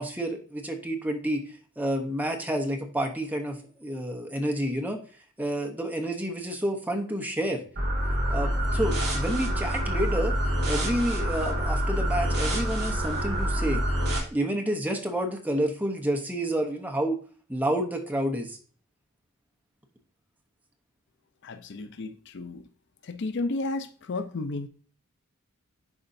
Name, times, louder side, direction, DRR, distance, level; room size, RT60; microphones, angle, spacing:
voice 1, 0.0-1.4 1.8-5.0 5.4-7.6 8.3-10.3 10.7-13.8 14.3-17.2 17.5-18.6, right 1 dB, 10° right, 0.9 m, -29 dB
sound 1, 7.7-14.2, equal, 45° right, 3.2 m, -26 dB
voice 2, 21.4-22.6 23.0-24.7, left 2 dB, 55° left, 0.5 m, -33 dB
10.5 x 4.3 x 2.6 m
head